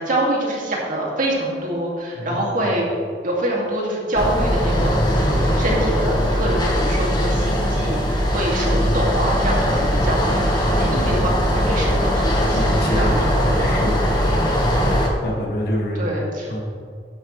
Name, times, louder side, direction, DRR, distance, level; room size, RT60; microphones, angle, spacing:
voice 1, 0.0-2.8 3.2-5.0 5.4-13.8 16.0-16.5, right 1 dB, 50° right, -3 dB, 2.3 m, -25 dB
voice 2, 2.1-2.7 8.7-9.0 10.9-11.4 12.5-14.3 15.2-16.1 16.5-16.6, equal, 60° left, -1 dB, 1.9 m, -27 dB
sound 1, 4.1-15.1, equal, 25° left, 1.4 m, -20 dB
13.0 x 10.0 x 3.3 m, 2.1 s
head